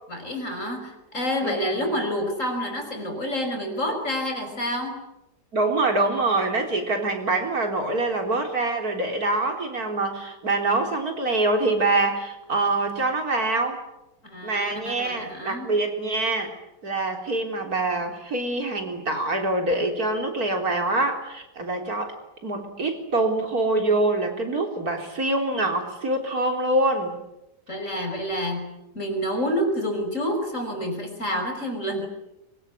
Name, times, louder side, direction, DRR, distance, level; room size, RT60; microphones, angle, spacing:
voice 1, 0.1-5.0 14.2-15.7 27.7-32.1, equal, 45° left, 5 dB, 5.9 m, -28 dB
voice 2, 1.4-1.9 5.5-13.8 14.4-16.5 16.8-22.1 22.4-27.2, right 2 dB, 60° right, 4 dB, 4.3 m, -25 dB
24.5 x 23.0 x 9.8 m, 0.89 s
omnidirectional pair, 1.8 m